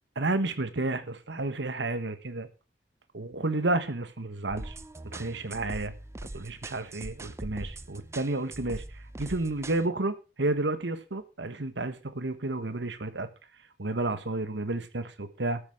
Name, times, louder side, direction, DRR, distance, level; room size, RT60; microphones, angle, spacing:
voice 1, 0.2-2.5 3.1-4.7 5.0-5.9 6.3-8.8 9.2-13.3 13.8-15.6, right 2 dB, 90° right, 12 dB, 1.3 m, -31 dB
sound 1, 4.5-9.9, right 1 dB, 15° right, 0.6 m, -42 dB
13.5 x 8.6 x 4.9 m, 0.31 s
head